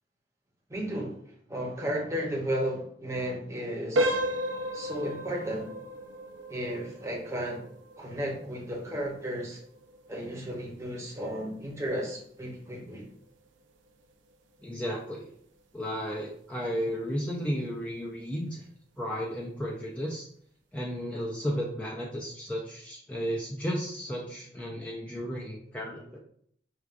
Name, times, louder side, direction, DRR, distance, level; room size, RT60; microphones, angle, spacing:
voice 1, 0.7-1.2 1.5-4.2 4.7-5.7 6.5-7.7 8.0-9.6 10.1-13.0, equal, 15° right, -2 dB, 0.7 m, -34 dB
sound 1, 3.9-14.6 15.0-15.2 15.8-15.9 16.4-16.5, equal, 85° right, 0.5 m, -35 dB
voice 2, 14.6-15.3 15.7-18.6 19.0-20.3 20.7-26.2, equal, 10° left, -3 dB, 0.3 m, -33 dB
4.5 x 2.3 x 2.4 m, 0.63 s
head